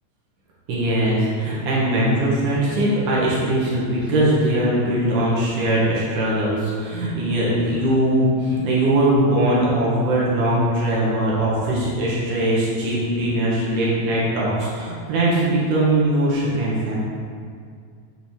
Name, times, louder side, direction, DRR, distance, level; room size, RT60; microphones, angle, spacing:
voice 1, 0.7-17.0, right 1 dB, 85° right, -6 dB, 2.9 m, -21 dB
8.1 x 7.0 x 3.6 m, 2.2 s
omnidirectional pair, 3.5 m